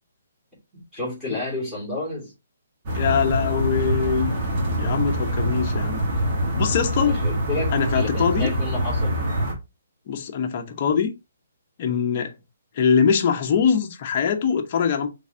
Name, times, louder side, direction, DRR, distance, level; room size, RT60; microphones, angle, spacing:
voice 1, 0.9-2.3 7.0-9.2, left 2 dB, ahead, 2.5 m, -31 dB
sound 1, 2.9-9.5, equal, 30° right, 1.4 m, -24 dB
voice 2, 3.0-4.4 4.8-6.0 6.6-7.2 7.7-8.5 10.1-11.1 11.8-12.3 12.7-15.1, left 6 dB, 35° left, 0.7 m, -22 dB
4.5 x 3.3 x 2.7 m
hypercardioid pair, 160°, 0 cm